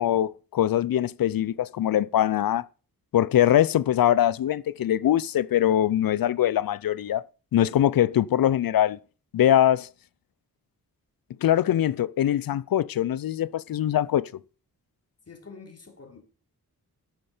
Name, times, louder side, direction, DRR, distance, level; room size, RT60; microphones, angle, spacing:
voice 1, 0.0-2.7 3.1-7.2 7.5-9.0 9.3-9.9 11.4-14.3, left 11 dB, 75° left, 0.6 m, -22 dB
voice 2, 15.3-16.2, left 4 dB, 45° left, 3.3 m, -46 dB
12.0 x 8.7 x 5.0 m
wide cardioid pair, 110°, 36 cm